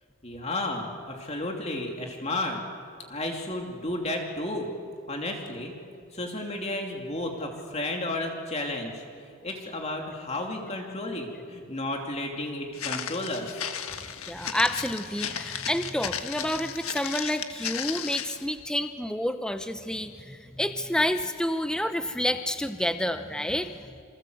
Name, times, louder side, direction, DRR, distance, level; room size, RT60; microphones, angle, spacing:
voice 1, 0.2-2.6 3.1-4.7 5.1-5.7 6.1-9.0 9.4-13.7, left 1 dB, 30° left, 1 dB, 2.9 m, -32 dB
Walk footsteps, 12.7-18.4, left 8 dB, 70° left, 1.6 m, -35 dB
voice 2, 14.3-23.9, left 1 dB, 5° left, 8 dB, 0.8 m, -29 dB
28.5 x 26.0 x 8.0 m, 2.3 s
head